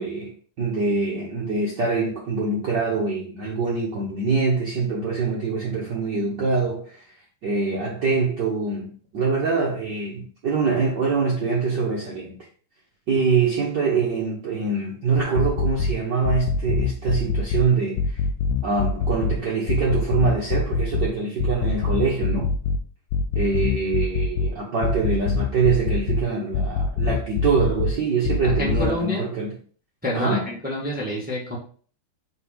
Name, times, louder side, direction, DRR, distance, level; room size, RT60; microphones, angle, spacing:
voice 1, 0.0-7.0 7.4-12.4 13.1-18.2 18.6-22.5 23.3-29.6 30.1-30.5, right 4 dB, 80° right, 0.9 m, -24 dB
sound 1, 15.2-15.9 16.2-17.6 18.0-19.4 19.7-21.1 21.4-22.8 23.1-24.5 24.8-26.2 26.5-27.9 28.2-28.9, left 4 dB, 80° left, 1.5 m, -23 dB
voice 2, 28.4-29.2 30.0-31.6, left 1 dB, 10° right, 0.5 m, -28 dB
5.2 x 4.0 x 5.0 m
omnidirectional pair, 3.6 m